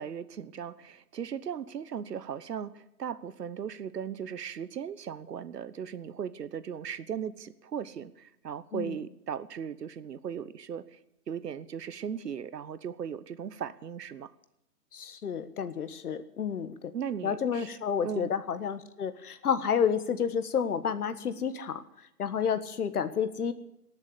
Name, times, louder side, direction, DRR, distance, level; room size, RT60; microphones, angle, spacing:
voice 1, 0.0-10.8 11.3-14.3 16.9-17.7 18.0-18.3, right 8 dB, 80° right, 15 dB, 1.2 m, -37 dB
voice 2, 14.9-16.9 17.2-21.8 22.2-23.5, left 7 dB, 65° left, 12 dB, 1.5 m, -30 dB
19.0 x 7.3 x 10.0 m, 0.83 s
hypercardioid pair, 165°, 47 cm